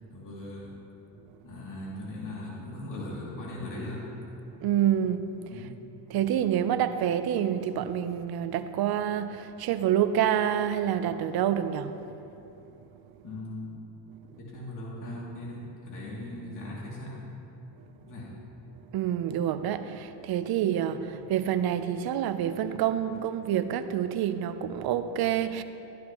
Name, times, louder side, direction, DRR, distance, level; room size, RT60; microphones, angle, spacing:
voice 1, 0.1-0.8 1.4-4.1 5.5-5.8 13.2-13.8 14.4-17.4 18.0-18.4, left 1 dB, 45° left, 2.8 m, -39 dB
voice 2, 4.6-5.5 6.1-12.0 18.9-25.6, right 10 dB, 60° right, 0.7 m, -27 dB
14.0 x 11.0 x 3.1 m
cardioid pair, 105°, 42 cm